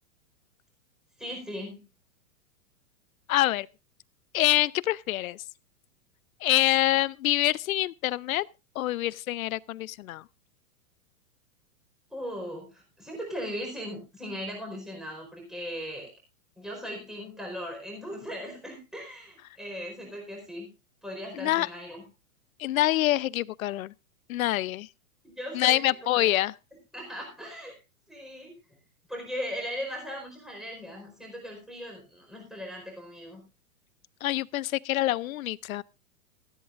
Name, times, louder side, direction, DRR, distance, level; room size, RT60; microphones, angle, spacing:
voice 1, 1.2-1.8 12.1-16.1 16.6-20.7 21.0-22.0 25.2-25.8 26.1-26.4 26.9-27.8 28.1-28.5 29.1-33.4, equal, ahead, 4.5 m, -38 dB
voice 2, 3.3-3.7 4.3-5.4 6.4-8.5 8.8-10.2 21.3-21.7 22.6-23.9 24.3-24.9 25.5-26.5 34.2-35.8, left 15 dB, 75° left, 0.6 m, -26 dB
15.5 x 14.0 x 2.5 m
hypercardioid pair, 145°, 42 cm